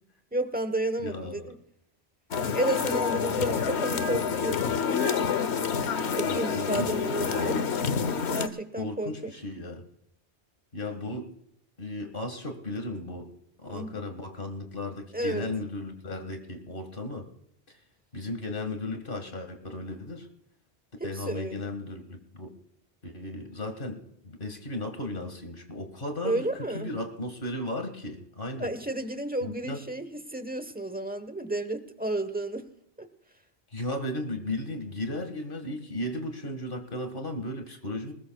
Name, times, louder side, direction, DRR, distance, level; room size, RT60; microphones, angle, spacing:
voice 1, 0.3-1.5 2.5-5.1 6.1-7.6 8.3-9.3 13.7-13.9 15.1-15.5 21.0-21.6 26.2-26.9 28.6-32.7 33.0-33.1, right 1 dB, 10° right, 9 dB, 1.0 m, -32 dB
voice 2, 1.0-1.5 3.4-3.5 6.2-7.6 8.8-9.8 10.7-11.3 11.8-13.3 13.6-17.3 18.1-20.3 21.0-22.5 23.0-28.7 29.4-29.8 33.7-38.1, left 1 dB, 50° left, 6 dB, 2.0 m, -35 dB
sound 1, 2.3-8.5, left 6 dB, 80° left, 1.1 m, -28 dB
20.5 x 20.0 x 2.3 m, 0.73 s
omnidirectional pair, 1.1 m